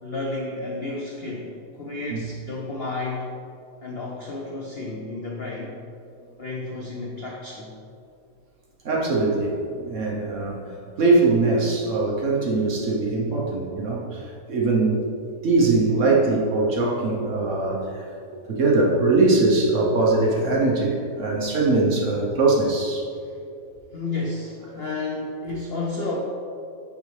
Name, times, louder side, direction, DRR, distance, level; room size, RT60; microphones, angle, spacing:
voice 1, 0.0-3.3 3.8-5.8 6.4-7.8 23.2-23.4 23.9-26.2, left 3 dB, 90° left, -2 dB, 0.5 m, -31 dB
voice 2, 8.8-15.0 15.4-18.0 18.5-23.0, right 3 dB, 55° right, -2 dB, 1.0 m, -21 dB
7.0 x 5.1 x 3.2 m, 2.6 s
omnidirectional pair, 1.9 m